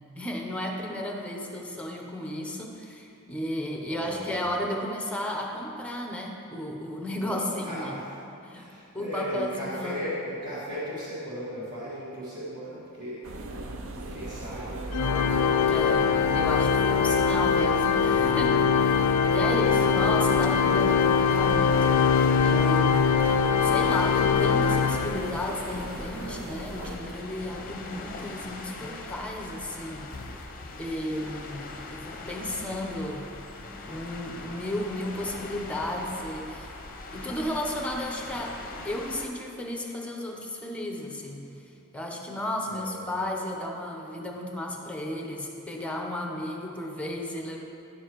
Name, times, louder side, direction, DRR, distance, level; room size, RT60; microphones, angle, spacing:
voice 1, 0.0-8.0 8.5-8.7 8.9-10.1 15.7-22.1 22.4-30.1 30.8-33.3 33.8-36.7 37.1-38.6 38.8-41.4 41.9-47.6, left 1 dB, 5° left, 0 dB, 0.7 m, -33 dB
voice 2, 3.8-4.4 7.2-8.1 8.6-13.2 14.1-15.0 19.2-19.8 42.6-43.0, equal, 40° right, -11 dB, 1.7 m, -36 dB
sound 1, 13.2-27.0, right 2 dB, 65° right, 0.6 m, -38 dB
Organ, 14.9-25.6, left 6 dB, 85° left, 0.3 m, -22 dB
sound 2, 19.6-39.3, left 3 dB, 40° left, 0.7 m, -41 dB
10.5 x 6.9 x 3.0 m, 2.6 s
head